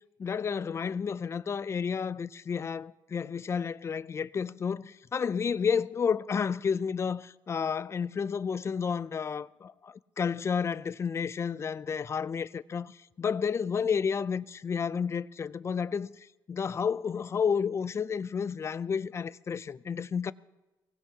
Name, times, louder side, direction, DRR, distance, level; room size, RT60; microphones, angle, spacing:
voice 1, 0.2-20.3, left 6 dB, 30° left, 0.4 m, -31 dB
23.5 x 18.5 x 2.8 m
cardioid pair, 130°, 9 cm